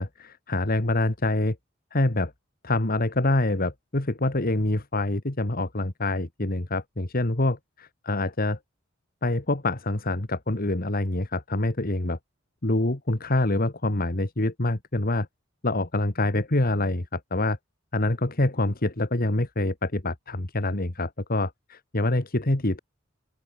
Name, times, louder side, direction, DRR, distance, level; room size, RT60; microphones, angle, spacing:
voice 1, 0.0-1.6 1.9-2.3 2.6-8.6 9.2-12.2 12.6-15.3 15.6-17.6 17.9-22.8, left 2 dB, 45° left, 2.0 m, -26 dB
open air
head